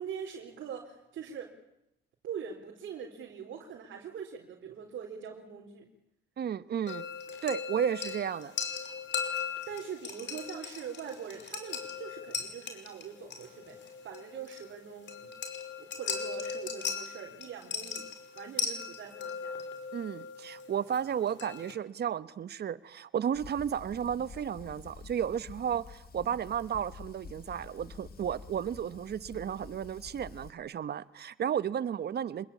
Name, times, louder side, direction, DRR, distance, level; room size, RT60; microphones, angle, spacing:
voice 1, 0.0-1.6 2.2-5.9 9.7-15.3 15.8-18.1 18.3-19.6, right 7 dB, 75° right, 4.2 m, -43 dB
voice 2, 6.4-7.0 7.4-8.5 19.9-32.4, right 9 dB, 55° right, 1.2 m, -33 dB
sound 1, 6.9-21.7, left 6 dB, 65° left, 5.3 m, -38 dB
Fire, 23.3-30.5, left 5 dB, 50° left, 2.8 m, -49 dB
26.5 x 21.5 x 8.6 m
cardioid pair, 90°, 20 cm